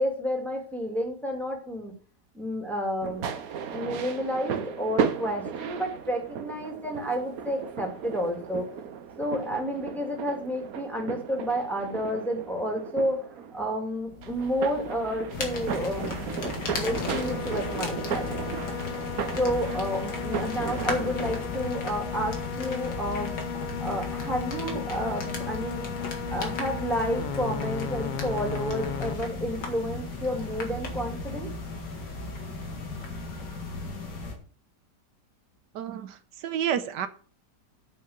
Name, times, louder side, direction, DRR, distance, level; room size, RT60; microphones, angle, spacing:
voice 1, 0.0-1.9 2.3-3.4 3.7-8.6 9.2-13.2 13.5-16.2 16.8-18.3 19.3-23.3 23.8-25.9 26.3-31.5, equal, ahead, 2.4 m, -30 dB
sound 1, 3.0-21.5, right 7 dB, 60° right, 1.3 m, -35 dB
sound 2, 14.0-31.3, left 8 dB, 70° left, 0.4 m, -37 dB
sound 3, 15.3-34.3, left 2 dB, 90° left, 2.7 m, -35 dB
voice 2, 35.7-37.1, right 9 dB, 80° right, 1.4 m, -30 dB
8.7 x 5.6 x 7.4 m
omnidirectional pair, 1.8 m